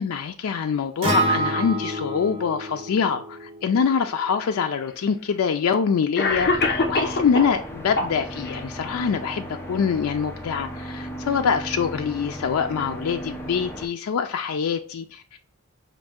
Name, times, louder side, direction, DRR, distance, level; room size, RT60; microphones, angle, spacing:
voice 1, 0.0-15.4, left 6 dB, 75° left, 0.4 m, -25 dB
Acoustic guitar, 1.0-5.3, right 1 dB, 25° right, 0.8 m, -28 dB
Cough, 4.5-4.6 5.6-5.7 6.2-7.6 7.9-8.6, left 3 dB, 50° left, 0.7 m, -24 dB
sound 1, 6.2-13.8, equal, 10° left, 0.5 m, -36 dB
5.2 x 2.6 x 3.6 m
head